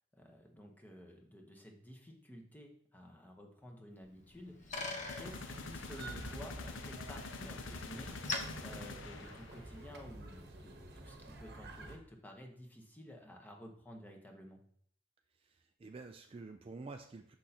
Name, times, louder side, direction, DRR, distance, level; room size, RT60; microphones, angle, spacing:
voice 1, 0.1-4.8 5.1-8.3 8.6-14.6, equal, 10° left, 1 dB, 0.9 m, -52 dB
Bicycle, 4.1-9.8, left 3 dB, 40° left, 0.8 m, -46 dB
sound 1, 5.1-9.8, left 4 dB, 75° left, 0.6 m, -47 dB
sound 2, 5.2-12.0, right 2 dB, 55° right, 1.0 m, -49 dB
voice 2, 15.4-17.4, right 3 dB, 30° right, 5 dB, 0.3 m, -49 dB
6.5 x 6.2 x 2.8 m, 0.63 s
head